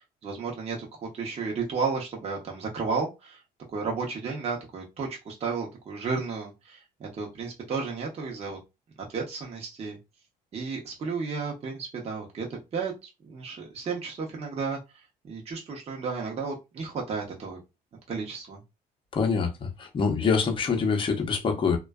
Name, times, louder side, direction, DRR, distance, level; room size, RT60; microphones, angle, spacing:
voice 1, 0.0-3.4 3.7-8.6 9.1-10.0 10.5-17.6 18.1-18.6, right 4 dB, 35° right, 0.7 m, -33 dB
voice 2, 19.1-21.8, left 5 dB, 30° left, 0.7 m, -25 dB
2.5 x 2.2 x 2.2 m
cardioid pair, 110°, 17 cm